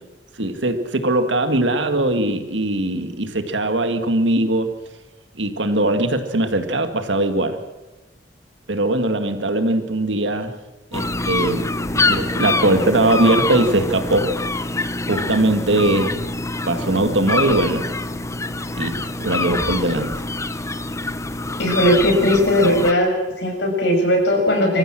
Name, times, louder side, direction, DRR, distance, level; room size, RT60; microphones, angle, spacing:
voice 1, 0.4-4.7 5.4-7.6 8.7-10.5 10.9-14.3 15.1-16.2 16.7-17.8 18.7-20.1, right 1 dB, 85° right, 8 dB, 1.9 m, -20 dB
sound 1, 10.9-22.9, left 2 dB, 15° left, 0.8 m, -25 dB
voice 2, 21.6-24.8, equal, 75° left, 1 dB, 6.0 m, -18 dB
25.0 x 15.0 x 7.5 m, 1.1 s
head